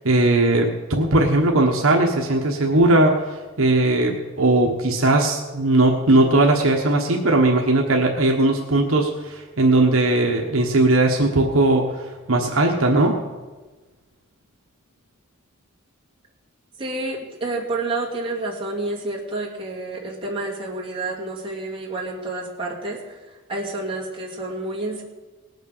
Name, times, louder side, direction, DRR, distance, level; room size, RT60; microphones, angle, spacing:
voice 1, 0.0-11.9 12.3-13.2, right 2 dB, 65° right, 1 dB, 1.3 m, -18 dB
voice 2, 16.8-25.0, right 2 dB, 25° right, -4 dB, 2.5 m, -29 dB
19.0 x 6.6 x 6.7 m, 1.2 s
head